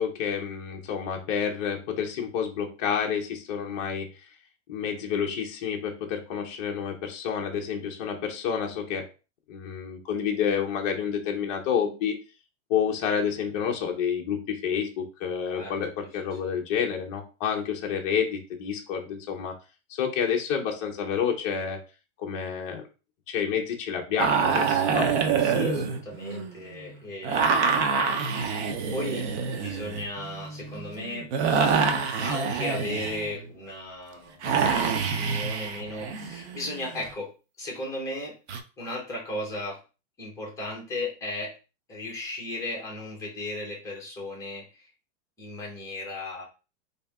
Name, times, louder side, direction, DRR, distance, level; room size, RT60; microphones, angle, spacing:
voice 1, 0.0-4.1 4.7-9.1 9.5-12.2 12.7-19.5 19.9-21.8 22.2-22.8 23.3-25.1, left 7 dB, 30° left, 1 dB, 0.6 m, -29 dB
sound 1, 24.2-26.7 27.2-33.4 34.4-37.1 38.5-38.6, right 5 dB, 65° right, 0.7 m, -26 dB
voice 2, 25.4-27.9 28.9-31.3 32.2-34.5 34.9-37.3 37.6-38.4 38.8-39.8 40.2-41.6 41.9-44.9 45.4-46.4, left 2 dB, 10° left, -2 dB, 0.9 m, -36 dB
3.3 x 2.7 x 3.4 m, 0.32 s
supercardioid pair, 165°, 37 cm